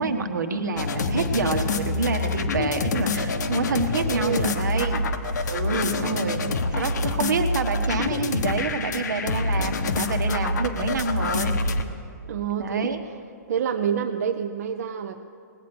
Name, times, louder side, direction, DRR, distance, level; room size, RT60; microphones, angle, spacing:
voice 1, 0.0-5.0 5.5-6.4 6.7-11.5 12.6-13.0, right 4 dB, 90° right, 6 dB, 1.3 m, -27 dB
sound 1, 0.8-11.8, left 3 dB, 75° left, 1.0 m, -26 dB
voice 2, 4.1-4.6 6.4-6.6 12.3-13.1 13.5-15.2, right 8 dB, 60° right, 6 dB, 0.6 m, -28 dB
19.0 x 8.2 x 6.0 m, 2.4 s
hypercardioid pair, 150°, 10 cm